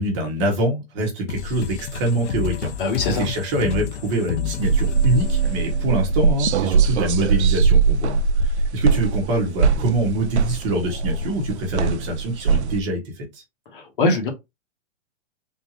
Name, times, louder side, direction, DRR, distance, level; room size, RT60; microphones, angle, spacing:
voice 1, 0.0-2.7 3.1-13.4, right 1 dB, 25° right, 1.2 m, -25 dB
sound 1, 1.3-6.6, left 8 dB, 75° left, 0.7 m, -31 dB
voice 2, 2.8-3.3 13.7-14.3, left 2 dB, 50° left, 1.2 m, -22 dB
sound 2, 4.6-12.8, right 5 dB, 75° right, 0.5 m, -21 dB
3.7 x 2.6 x 2.9 m
hypercardioid pair, 160°, 34 cm